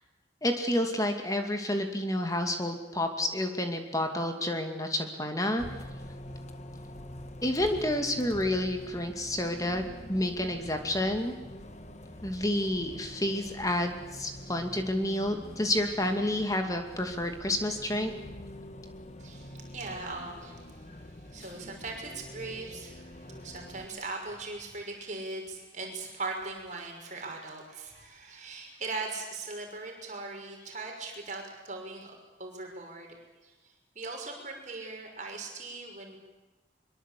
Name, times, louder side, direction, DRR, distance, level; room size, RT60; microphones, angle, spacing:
voice 1, 0.4-5.6 7.4-9.8 10.1-11.4 12.2-18.1, left 1 dB, 20° left, 5 dB, 2.4 m, -29 dB
Bus, 5.6-23.9, left 1 dB, 35° left, 1.6 m, -45 dB
voice 2, 19.2-33.2 33.4-36.2, right 3 dB, 40° right, 1 dB, 5.9 m, -40 dB
23.5 x 23.0 x 8.5 m, 1.1 s
head